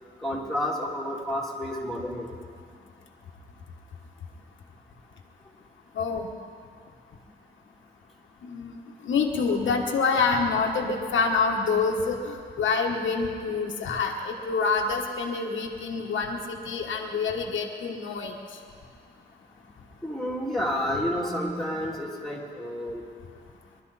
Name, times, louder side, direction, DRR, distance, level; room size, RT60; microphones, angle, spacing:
voice 1, 0.2-2.3 20.0-23.0, equal, ahead, -5 dB, 3.0 m, -30 dB
voice 2, 5.9-6.3 8.4-18.3, left 4 dB, 85° left, 1 dB, 1.4 m, -27 dB
23.0 x 12.0 x 4.2 m, 2.2 s
cardioid pair, 105°, 19 cm